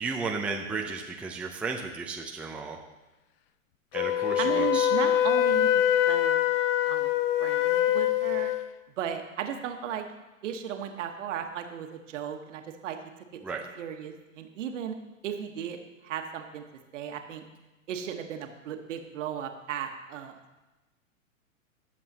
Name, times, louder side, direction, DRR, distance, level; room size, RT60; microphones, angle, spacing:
voice 1, 0.0-2.8 3.9-4.9 13.4-13.6, right 4 dB, 5° right, 0 dB, 0.6 m, -34 dB
Wind instrument woodwind instrument, 3.9-8.7, left 11 dB, 45° left, 0.6 m, -24 dB
voice 2, 4.4-6.4 6.8-7.1 7.4-8.5 9.0-10.1 10.4-13.0 13.3-13.4 13.8-15.0 15.2-15.8 16.0-16.6 16.9-17.4 17.9-20.4, right 8 dB, 60° right, 5 dB, 1.5 m, -35 dB
19.0 x 7.6 x 2.9 m, 1.1 s
hypercardioid pair, 120°, 41 cm